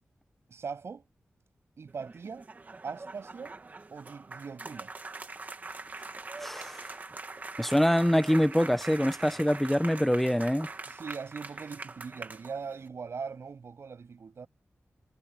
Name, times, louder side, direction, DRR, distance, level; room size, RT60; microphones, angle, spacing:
voice 1, 0.5-1.1 1.8-2.5 2.8-3.6 3.9-4.9 10.9-14.5, right 5 dB, 65° right, 7.2 m, -40 dB
sound 1, 1.9-12.9, right 3 dB, 35° right, 1.6 m, -43 dB
voice 2, 6.4-6.9 7.6-10.7, equal, 5° left, 0.8 m, -25 dB
wide cardioid pair, 160°, 5 cm